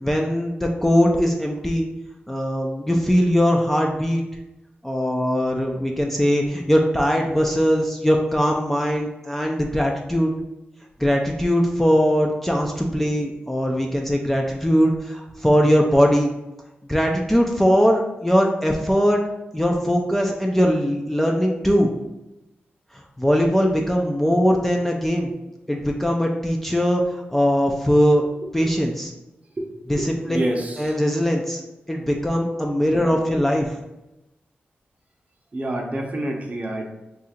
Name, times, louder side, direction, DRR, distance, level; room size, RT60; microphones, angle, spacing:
voice 1, 0.0-1.9 2.3-4.2 4.8-10.3 11.0-16.3 16.9-19.2 19.5-21.9 23.2-25.3 25.7-27.0 27.3-28.2 28.5-29.1 29.9-30.4 30.8-31.6 31.9-33.7, equal, 5° left, 0 dB, 0.4 m, -20 dB
voice 2, 29.9-30.8 35.5-36.9, right 1 dB, 35° right, 1 dB, 0.7 m, -27 dB
2.7 x 2.4 x 4.2 m, 0.98 s
cardioid pair, 75°, 4 cm